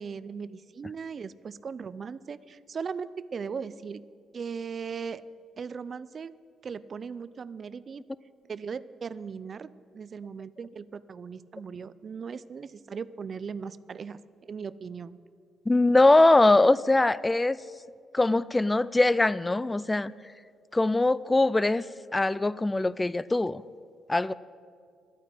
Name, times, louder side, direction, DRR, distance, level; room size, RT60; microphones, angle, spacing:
voice 1, 0.0-4.0 4.3-5.2 5.6-6.3 6.6-8.0 8.5-15.2, right 6 dB, 45° right, 17 dB, 0.5 m, -38 dB
voice 2, 15.7-17.6 18.1-20.1 20.7-21.8 22.1-23.6 24.1-24.3, left 2 dB, 15° left, 18 dB, 0.3 m, -22 dB
11.5 x 9.3 x 9.0 m, 2.1 s
cardioid pair, 90°, 0 cm